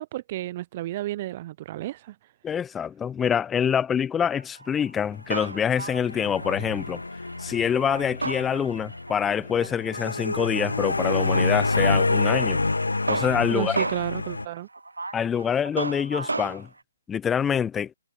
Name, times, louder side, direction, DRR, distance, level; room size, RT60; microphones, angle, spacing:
voice 1, 0.0-2.2 13.5-14.7, right 15 dB, 35° right, 0.5 m, -32 dB
voice 2, 2.4-7.0 7.4-12.6 13.1-13.9 15.1-16.7 17.1-17.9, left 8 dB, 10° left, 0.8 m, -26 dB
Male speech man speaking, 4.2-16.7, right 3 dB, 80° right, 0.5 m, -35 dB
sound 1, 5.5-14.5, left 3 dB, 80° left, 1.3 m, -28 dB
figure-of-eight pair, 140°, 0 cm